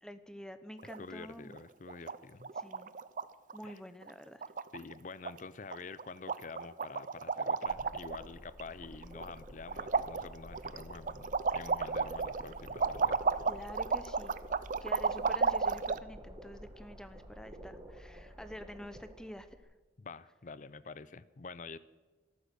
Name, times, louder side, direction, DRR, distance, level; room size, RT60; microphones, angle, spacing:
voice 1, 0.0-1.6 2.5-2.9 3.5-4.4 13.5-14.4 14.8-19.6, equal, 5° left, 11 dB, 0.7 m, -48 dB
sound 1, 0.8-1.2 1.5-1.6 1.9-2.2 2.4-3.2 3.5-3.7 4.0-4.1 4.4-4.9 5.2-5.4 5.7-6.0 6.3-8.2 8.6-9.4 9.7-16.0, right 5 dB, 45° right, 0.5 m, -33 dB
voice 2, 1.0-2.5 3.6-3.8 4.7-13.2 20.0-21.8, left 4 dB, 45° left, 17 dB, 0.5 m, -47 dB
sound 2, 7.7-19.6, equal, 20° right, 2.0 m, -51 dB
13.5 x 12.5 x 6.8 m, 1.2 s
head